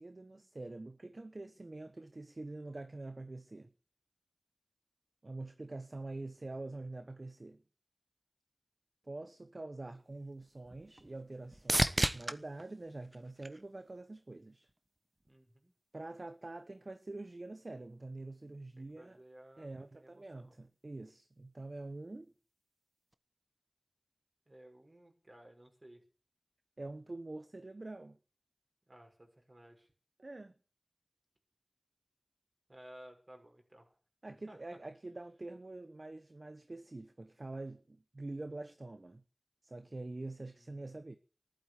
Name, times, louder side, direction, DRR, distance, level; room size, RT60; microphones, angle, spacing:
voice 1, 0.0-3.7 5.2-7.6 9.0-14.7 15.9-19.2 19.6-22.3 26.8-28.2 30.2-30.5 34.2-39.2 39.6-41.2, right 2 dB, 60° right, 1.0 m, -45 dB
sound 1, 9.9-14.2 14.7-15.3 23.1-23.2, right 1 dB, 25° right, 1.1 m, -36 dB
voice 2, 15.3-15.7 18.8-20.6 24.5-26.0 28.9-29.9 32.7-33.9 34.5-34.6 40.3-41.0, right 1 dB, 40° right, 6.2 m, -57 dB
14.0 x 12.0 x 8.2 m
wide cardioid pair, 45°, 0 cm